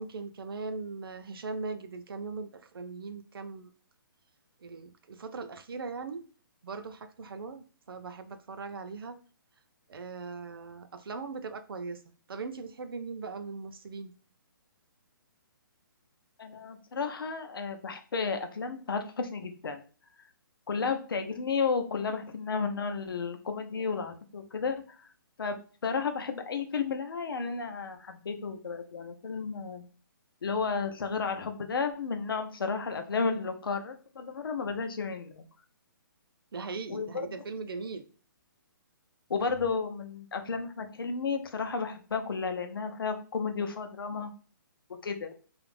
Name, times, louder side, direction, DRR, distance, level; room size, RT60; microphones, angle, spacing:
voice 1, 0.0-3.7 4.6-6.3 6.6-9.2 9.9-12.0 12.3-14.1 36.5-38.0, right 4 dB, 85° right, 9 dB, 0.5 m, -39 dB
voice 2, 16.4-19.8 20.7-25.1 25.4-25.6 25.8-29.8 30.4-35.5 36.9-37.3 39.3-44.3 45.0-45.3, left 5 dB, 85° left, 6 dB, 0.6 m, -32 dB
2.4 x 2.0 x 3.2 m, 0.39 s
hypercardioid pair, 170°, 12 cm